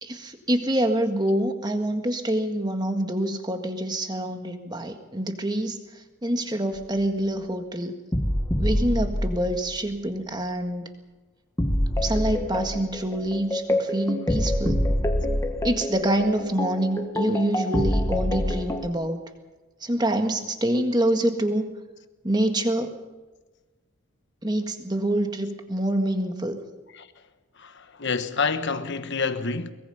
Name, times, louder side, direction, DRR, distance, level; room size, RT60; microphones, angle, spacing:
voice 1, 0.0-5.8 6.2-7.9 8.6-10.9 12.0-14.9 15.6-19.3 19.8-21.7 22.2-23.0 24.4-26.6, right 1 dB, 20° right, 1.7 m, -26 dB
sound 1, 6.8-6.9 8.1-9.9 11.6-18.9, left 1 dB, 15° left, 1.3 m, -26 dB
voice 2, 27.6-29.7, left 4 dB, 50° left, 1.3 m, -28 dB
23.5 x 21.0 x 5.6 m
head